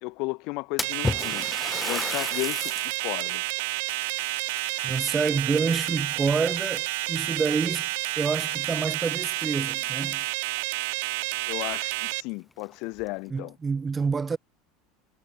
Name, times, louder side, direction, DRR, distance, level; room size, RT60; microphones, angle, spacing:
voice 1, 0.0-1.5 1.8-3.4 11.5-13.6, left 28 dB, 60° left, 1.9 m, -34 dB
Splash splatter, 0.8-3.1 3.6-3.7 4.6-5.6 6.0-6.4 7.2-7.3 7.8-7.9 10.1-10.2 10.5-10.6 11.2-11.3 11.7-11.8 12.5-13.1, left 3 dB, 15° left, 5.0 m, -33 dB
sound 1, 0.8-12.2, right 24 dB, 65° right, 0.5 m, -30 dB
Water tap faucet / Sink (filling or washing) / Liquid, 3.9-10.3, left 8 dB, 80° left, 6.0 m, -46 dB
voice 2, 4.8-7.9 8.2-10.2 13.3-14.4, right 5 dB, 20° right, 1.0 m, -27 dB
figure-of-eight pair, 75°, 0 cm